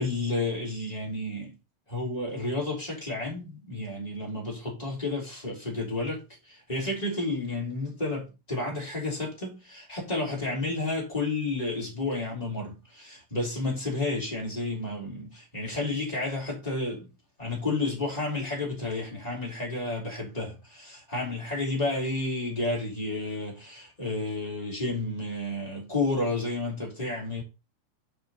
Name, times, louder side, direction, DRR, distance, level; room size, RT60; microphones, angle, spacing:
voice 1, 0.0-1.6 1.9-17.1 17.4-27.4, left 2 dB, 10° left, 2.6 m, -31 dB
6.5 x 5.8 x 4.0 m
omnidirectional pair, 4.5 m